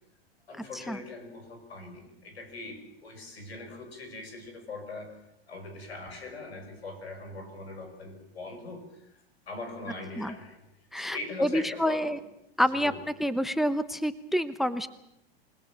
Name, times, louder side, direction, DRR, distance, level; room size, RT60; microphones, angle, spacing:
voice 1, 0.5-5.2 5.5-10.6 11.0-12.1 12.7-13.0, left 3 dB, 85° left, 6 dB, 6.3 m, -41 dB
voice 2, 10.9-12.2 12.6-12.9 13.2-14.9, equal, ahead, 14 dB, 1.0 m, -27 dB
27.5 x 19.5 x 7.3 m, 0.83 s
hypercardioid pair, 105°, 31 cm